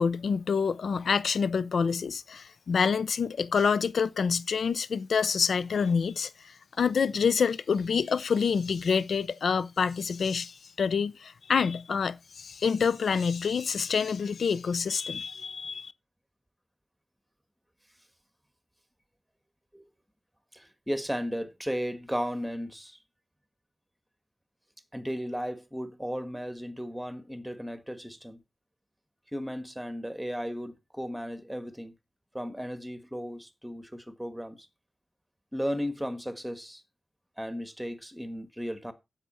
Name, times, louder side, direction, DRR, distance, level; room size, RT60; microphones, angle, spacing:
voice 1, 0.0-15.9, left 6 dB, 80° left, 0.5 m, -27 dB
voice 2, 20.5-23.0 24.9-28.4 29.3-31.9 32.3-34.7 35.5-36.8 37.4-38.9, equal, ahead, 1.4 m, -35 dB
10.0 x 8.1 x 4.3 m
wide cardioid pair, 115°, 0 cm